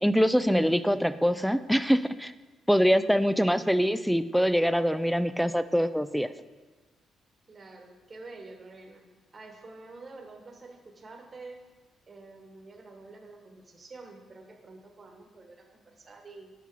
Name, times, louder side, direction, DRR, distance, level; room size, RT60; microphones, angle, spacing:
voice 1, 0.0-2.3 2.7-6.3, equal, ahead, 13 dB, 0.3 m, -24 dB
voice 2, 7.5-11.6 12.1-16.5, right 3 dB, 35° right, 3 dB, 1.1 m, -48 dB
5.8 x 5.5 x 4.6 m, 1.3 s
cardioid pair, 90°, 0 cm